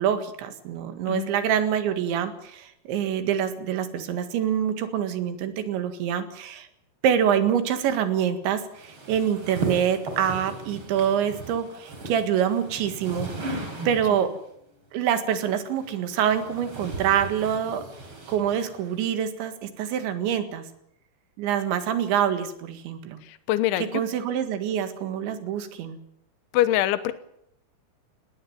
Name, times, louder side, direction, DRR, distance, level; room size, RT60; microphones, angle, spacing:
voice 1, 0.0-6.7 7.0-13.3 13.9-14.3 14.9-17.8 18.3-20.6 21.4-23.2 23.9-26.0, right 9 dB, 70° right, 9 dB, 3.9 m, -26 dB
sound 1, 8.7-14.4 15.4-19.0, right 2 dB, 30° right, 4.2 m, -37 dB
voice 2, 23.3-24.0 26.5-27.1, left 13 dB, 80° left, 13 dB, 3.4 m, -24 dB
19.0 x 17.5 x 9.4 m, 0.75 s
omnidirectional pair, 5.6 m